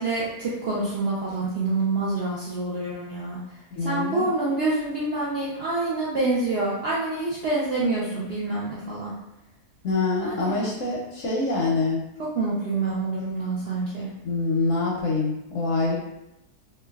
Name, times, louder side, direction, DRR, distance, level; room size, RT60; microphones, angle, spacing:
voice 1, 0.0-3.4 3.8-9.1 10.2-10.5 12.3-14.1, right 2 dB, 75° right, -7 dB, 0.5 m, -27 dB
voice 2, 3.7-4.3 9.8-12.0 14.2-16.0, left 3 dB, 65° left, -3 dB, 0.8 m, -25 dB
3.1 x 2.2 x 2.3 m, 0.88 s
omnidirectional pair, 1.7 m